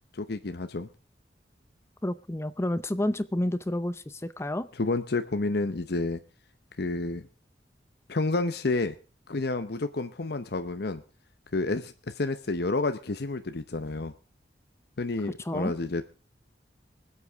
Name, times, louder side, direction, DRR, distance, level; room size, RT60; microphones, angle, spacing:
voice 1, 0.1-0.9 4.7-6.2 6.8-7.3 8.1-9.0 9.3-11.0 11.5-14.1 15.0-16.0, left 3 dB, 65° left, 9 dB, 0.8 m, -30 dB
voice 2, 2.0-4.7 15.5-15.7, left 1 dB, 15° left, 13 dB, 0.6 m, -30 dB
24.5 x 8.3 x 3.5 m, 0.35 s
head